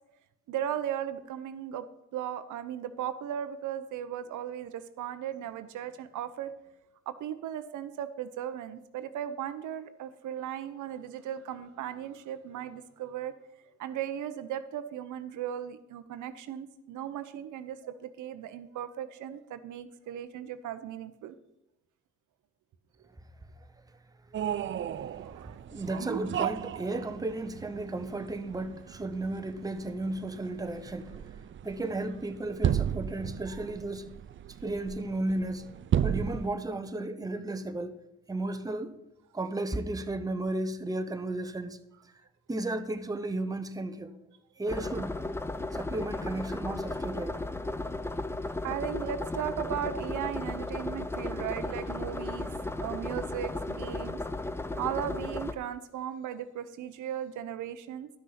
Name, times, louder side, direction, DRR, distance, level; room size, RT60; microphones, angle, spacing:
voice 1, 0.5-1.9 2.1-6.6 7.1-13.3 13.8-21.4 25.2-25.6 33.5-33.6 34.4-34.5 48.6-54.2 54.8-58.1, right 10 dB, 80° right, 0.8 m, -37 dB
sound 1, 24.3-36.5, right 9 dB, 40° right, 0.4 m, -34 dB
voice 2, 25.0-25.3 25.7-31.3 31.6-34.1 34.6-35.7 36.0-38.0 38.3-39.0 39.3-41.8 42.5-44.1 44.6-45.2 45.7-47.4, right 2 dB, 10° right, 0.9 m, -34 dB
sound 2, 44.7-55.5, left 2 dB, 10° left, 0.6 m, -35 dB
12.0 x 6.4 x 5.7 m
cardioid pair, 90°, 30 cm